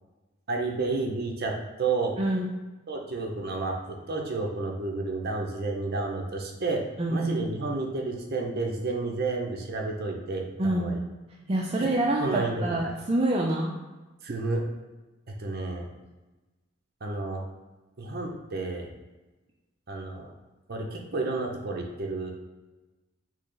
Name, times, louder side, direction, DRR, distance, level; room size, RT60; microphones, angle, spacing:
voice 1, 0.5-1.5 1.8-2.2 2.9-6.8 7.1-10.4 10.7-11.0 11.8-11.9 12.2-12.6 14.2-14.6 15.4-15.8 17.0-17.4 18.0-18.9 19.9-20.3 20.7-22.3, right 3 dB, 50° right, 0 dB, 0.7 m, -31 dB
voice 2, 2.2-2.5 7.0-7.5 10.6-11.0 11.5-13.8, right 1 dB, 30° right, -2 dB, 0.4 m, -26 dB
6.1 x 2.1 x 3.8 m, 1.1 s
head